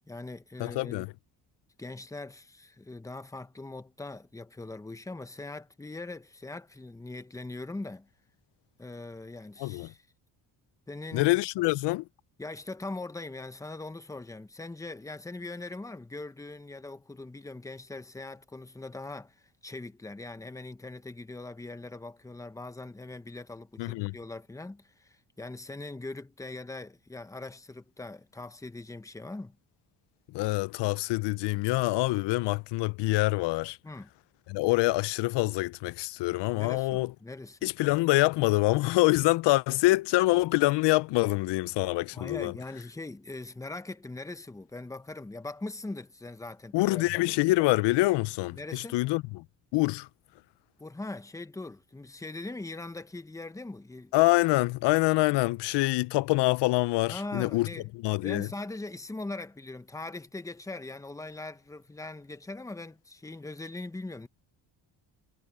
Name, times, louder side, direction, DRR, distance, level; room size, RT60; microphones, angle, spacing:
voice 1, 0.1-1.1 1.8-8.1 8.8-10.1 10.9-11.3 12.4-29.6 33.8-34.1 36.5-37.7 42.1-47.4 48.5-49.0 50.8-54.1 57.1-57.9 58.2-64.3, left 2 dB, 10° left, 0.9 m, -41 dB
voice 2, 0.6-1.1 9.6-9.9 11.1-12.0 23.8-24.1 30.3-33.8 34.5-37.1 37.6-42.5 46.7-49.4 49.7-50.1 54.1-57.7 58.0-58.5, left 20 dB, 80° left, 0.5 m, -25 dB
cardioid pair, 135°, 41 cm